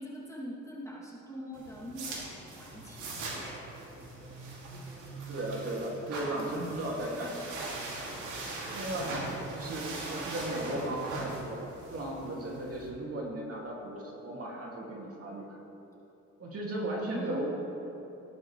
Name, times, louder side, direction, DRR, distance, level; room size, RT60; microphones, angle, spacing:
voice 1, 0.0-4.4 4.7-5.3 17.0-17.4, equal, 10° left, -6 dB, 2.8 m, -44 dB
sound 1, 1.5-12.9, right 2 dB, 80° right, 2.7 m, -40 dB
voice 2, 5.3-7.6 8.7-9.1 9.5-15.5 16.4-17.5, right 1 dB, 50° right, -3 dB, 2.6 m, -36 dB
17.0 x 10.5 x 3.4 m, 3.0 s
cardioid pair, 90°, 30 cm